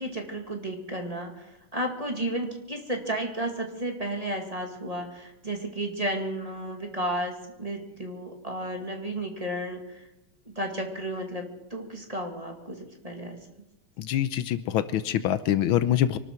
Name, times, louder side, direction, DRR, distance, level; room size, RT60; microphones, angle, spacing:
voice 1, 0.0-1.5 1.7-10.0 10.6-13.4, right 1 dB, 20° right, 2 dB, 2.0 m, -33 dB
voice 2, 14.0-16.2, left 11 dB, 80° left, 13 dB, 1.5 m, -25 dB
24.5 x 12.5 x 4.5 m, 0.93 s
omnidirectional pair, 2.3 m